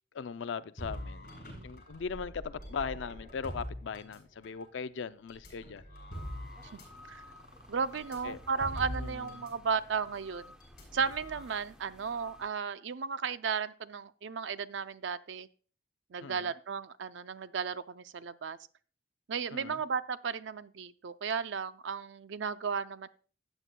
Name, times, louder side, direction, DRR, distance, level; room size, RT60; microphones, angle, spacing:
voice 1, 0.1-1.3 1.6-5.8 8.2-8.4 9.0-9.4 16.2-16.5 19.5-19.8, left 5 dB, 70° left, 0.4 m, -39 dB
sound 1, 0.8-4.6 5.3-9.5 9.8-10.0 10.6-11.4, equal, 45° left, 5.8 m, -44 dB
sound 2, 6.1-12.5, left 1 dB, 5° right, 0.8 m, -54 dB
voice 2, 7.7-10.4 10.9-15.5 16.1-18.6 19.3-23.1, right 6 dB, 65° right, 0.5 m, -34 dB
15.0 x 9.0 x 2.2 m
head